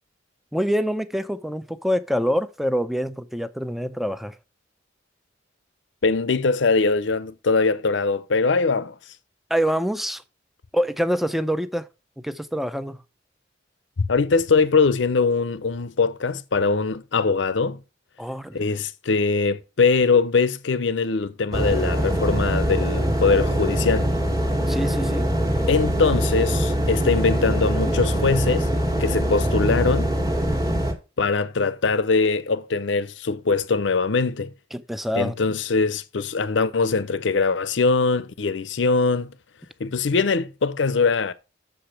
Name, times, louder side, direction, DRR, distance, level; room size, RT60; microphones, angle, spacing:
voice 1, 0.5-4.4 9.5-10.2 10.7-11.9 12.2-13.0 18.2-18.6 24.7-25.3 34.7-35.3, equal, ahead, 0.4 m, -25 dB
voice 2, 6.0-9.0 14.0-17.8 18.5-24.1 25.7-28.7 29.0-30.1 31.2-34.5 35.1-39.3 39.8-41.3, left 4 dB, 70° left, 0.6 m, -22 dB
sound 1, 21.5-30.9, equal, 20° right, 1.5 m, -23 dB
6.8 x 5.0 x 5.7 m
head